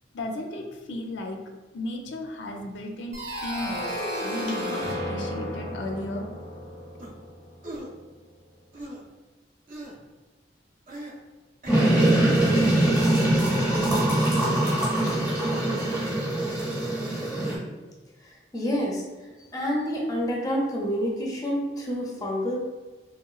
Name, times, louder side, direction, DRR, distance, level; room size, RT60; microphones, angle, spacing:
voice 1, 0.1-1.4 1.7-6.3, left 1 dB, 80° left, 3 dB, 0.4 m, -35 dB
sound 1, 3.1-7.8, equal, 85° right, 0.9 m, -33 dB
sound 2, 7.0-7.1 7.6-7.9 8.7-9.0 9.7-10.0 10.9-11.2 11.6-13.1, right 1 dB, 45° right, 0.5 m, -39 dB
sound 3, 11.7-17.6, right 1 dB, 10° right, 0.7 m, -22 dB
voice 2, 14.0-14.4 18.5-19.0 19.5-22.6, equal, 20° left, -1 dB, 0.5 m, -28 dB
3.0 x 2.8 x 2.3 m, 1.2 s
head